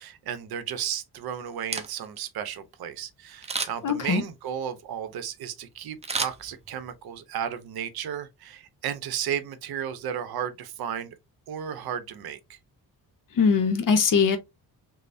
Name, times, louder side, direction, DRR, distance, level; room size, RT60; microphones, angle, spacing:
voice 1, 0.0-11.1 11.5-12.6, right 9 dB, 75° right, 0.7 m, -34 dB
Camera, 1.5-2.3 3.4-4.0 6.0-7.0 7.4-7.5, right 4 dB, 20° right, 0.4 m, -32 dB
voice 2, 3.8-4.2 13.4-14.4, left 5 dB, 55° left, 0.7 m, -21 dB
3.1 x 2.0 x 2.5 m
cardioid pair, 100°, 38 cm